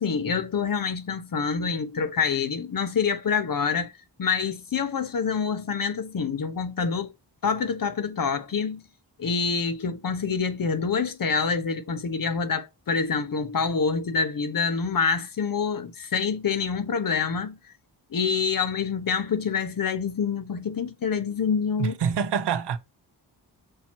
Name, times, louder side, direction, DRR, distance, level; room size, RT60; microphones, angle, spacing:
voice 1, 0.0-3.9 4.2-7.1 7.4-8.8 9.2-17.6 18.1-21.9, left 5 dB, 55° left, 1.1 m, -26 dB
voice 2, 21.8-22.8, right 7 dB, 75° right, 0.9 m, -26 dB
6.7 x 4.3 x 4.5 m
wide cardioid pair, 85°, 41 cm